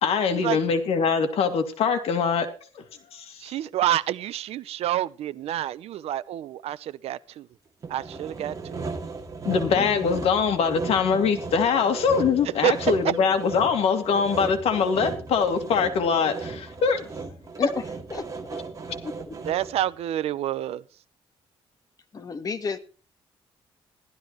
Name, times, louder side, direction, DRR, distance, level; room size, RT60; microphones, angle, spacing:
voice 1, 0.0-2.5 3.1-3.4 9.4-17.1, left 6 dB, 75° left, 2.2 m, -23 dB
voice 2, 3.4-7.5 7.9-8.8 12.6-12.7 19.5-20.8, right 12 dB, 85° right, 0.7 m, -28 dB
Sawing, 7.8-19.9, right 4 dB, 35° right, 2.5 m, -36 dB
voice 3, 9.7-10.2 17.6-17.8 18.1-18.3 19.0-19.4 22.1-22.8, left 5 dB, 35° left, 1.5 m, -31 dB
16.0 x 12.5 x 3.2 m
cardioid pair, 125°, 10 cm